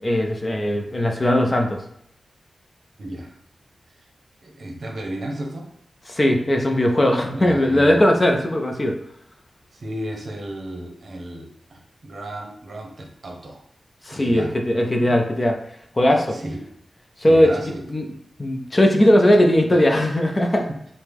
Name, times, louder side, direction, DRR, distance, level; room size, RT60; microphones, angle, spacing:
voice 1, 0.0-1.8 6.1-8.9 14.0-15.6 16.0-16.4 17.2-17.5 17.9-18.0 18.4-20.7, left 1 dB, 25° left, 3 dB, 0.4 m, -18 dB
voice 2, 3.0-3.3 3.9-4.0 4.4-5.7 6.2-6.3 7.3-8.0 9.7-13.6 14.1-14.5 16.3-16.6 17.2-17.8 19.7-19.8 20.4-20.5, right 1 dB, 55° right, 1 dB, 0.8 m, -34 dB
4.6 x 2.1 x 3.5 m, 0.70 s
wide cardioid pair, 120°, 0 cm